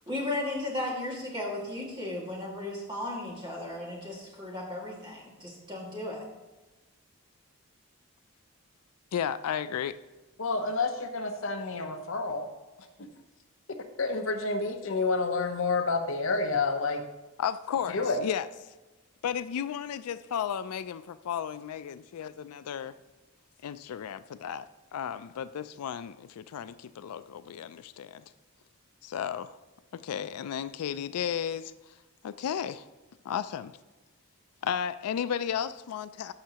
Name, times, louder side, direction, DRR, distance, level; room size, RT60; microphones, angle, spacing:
voice 1, 0.1-6.2, left 2 dB, 20° right, -3 dB, 1.9 m, -35 dB
voice 2, 9.1-10.0 17.4-18.5 19.2-22.9 23.6-28.2 29.0-29.6 29.9-31.9 32.2-32.9 33.2-33.8 34.6-36.3, left 8 dB, 85° left, 14 dB, 0.3 m, -34 dB
voice 3, 10.4-12.5 13.0-13.1 14.0-17.0 17.9-18.2, left 3 dB, 60° left, 6 dB, 0.7 m, -29 dB
13.5 x 5.6 x 2.9 m, 1.1 s
head